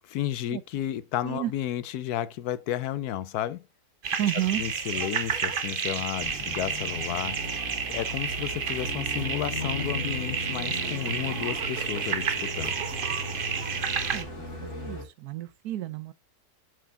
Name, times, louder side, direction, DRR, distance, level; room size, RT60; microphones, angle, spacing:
voice 1, 0.0-3.6 4.6-7.4 7.9-12.8, left 12 dB, 85° left, 1.2 m, -32 dB
sound 1, 4.0-14.2, right 6 dB, 40° right, 0.9 m, -31 dB
voice 2, 4.2-4.6 14.1-14.3 14.6-16.1, right 13 dB, 85° right, 1.2 m, -31 dB
sound 2, 6.2-15.0, left 2 dB, 50° left, 3.5 m, -38 dB
7.8 x 6.5 x 3.6 m
omnidirectional pair, 1.6 m